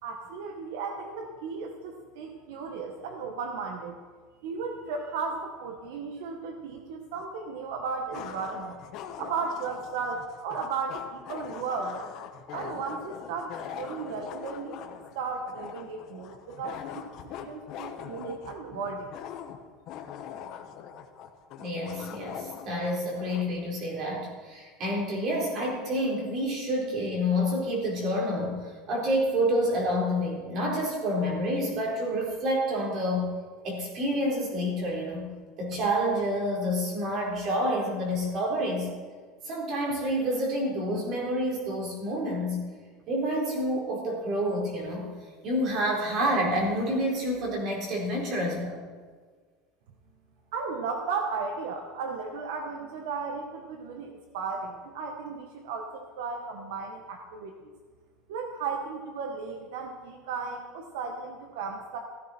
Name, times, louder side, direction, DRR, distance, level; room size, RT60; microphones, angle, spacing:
voice 1, 0.0-4.0 4.4-8.7 9.2-12.1 12.5-17.0 17.3-19.1 50.5-57.5 58.3-62.0, right 5 dB, 75° right, 3 dB, 1.5 m, -35 dB
sound 1, 7.1-7.2 8.1-23.5, left 9 dB, 40° left, 1.2 m, -42 dB
voice 2, 21.6-33.3 33.6-35.3 35.6-38.9 39.4-42.7 43.1-45.1 45.4-48.8, equal, 35° right, -2 dB, 4.1 m, -28 dB
16.0 x 14.0 x 4.5 m, 1.5 s
cardioid pair, 170°, 0 cm